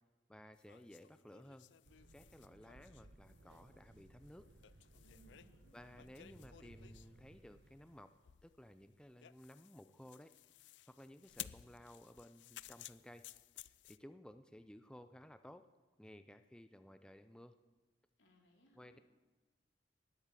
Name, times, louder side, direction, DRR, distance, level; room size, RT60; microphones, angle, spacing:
voice 1, 0.3-1.7 2.1-4.5 5.7-8.1 8.4-10.3 10.9-13.2 13.7-15.6 16.0-17.5 18.7-19.0, left 1 dB, 5° left, 10 dB, 0.5 m, -57 dB
sound 1, 0.5-7.2 8.2-14.0, left 13 dB, 70° left, 0.4 m, -56 dB
sound 2, 1.8-8.0, right 1 dB, 75° right, 1.1 m, -62 dB
voice 2, 5.0-6.2 18.2-19.0, right 1 dB, 85° left, 1 dB, 3.4 m, -68 dB
19.0 x 8.6 x 7.4 m, 1.2 s
head